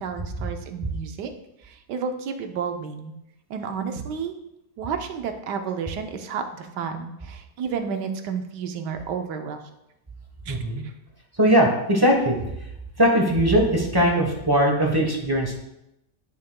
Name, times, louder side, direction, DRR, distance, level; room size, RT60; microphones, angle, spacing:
voice 1, 0.0-1.3 1.9-3.1 3.5-4.3 4.8-9.6 10.5-10.6, right 6 dB, 80° right, 6 dB, 1.3 m, -31 dB
voice 2, 10.5-10.8 11.4-12.4 13.0-15.5, equal, 15° right, 1 dB, 0.8 m, -20 dB
9.5 x 7.6 x 2.2 m, 0.86 s
omnidirectional pair, 1.8 m